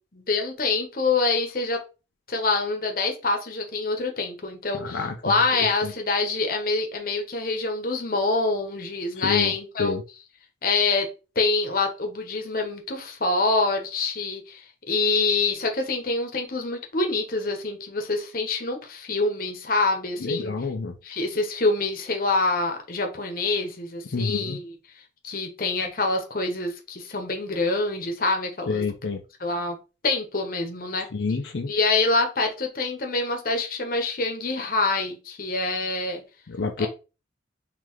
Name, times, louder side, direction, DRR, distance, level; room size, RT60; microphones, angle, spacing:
voice 1, 0.1-1.8 2.3-9.9 10.6-11.1 11.3-20.5 21.0-28.8 29.4-29.8 30.0-31.1 31.7-36.2 36.8-36.9, left 3 dB, 50° left, 1.0 m, -26 dB
voice 2, 4.8-5.1 5.8-5.9 9.2-9.5 9.8-10.0 20.2-20.9 24.1-24.6 28.7-29.2 31.1-31.7 36.5-36.9, left 4 dB, 80° left, 0.5 m, -27 dB
3.9 x 3.3 x 3.1 m
head